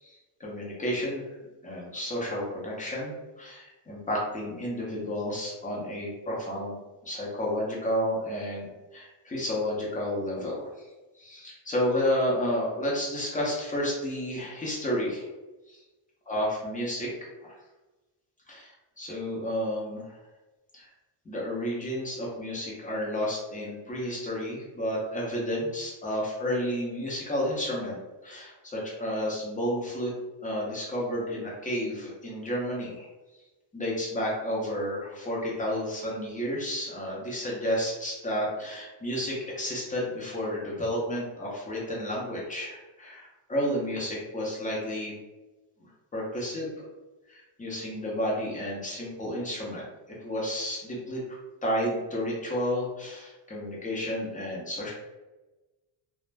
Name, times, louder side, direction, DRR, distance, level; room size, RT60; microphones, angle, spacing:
voice 1, 0.0-1.4 1.6-10.8 11.1-15.3 15.7-15.8 16.3-17.1 17.4-17.5 18.5-20.2 20.7-20.9 21.2-30.1 30.4-33.1 33.7-45.1 45.8-46.7 47.3-49.8 50.2-51.2 51.6-54.9, equal, 15° left, -4 dB, 0.7 m, -31 dB
2.4 x 2.1 x 3.2 m, 1.1 s
cardioid pair, 140°, 49 cm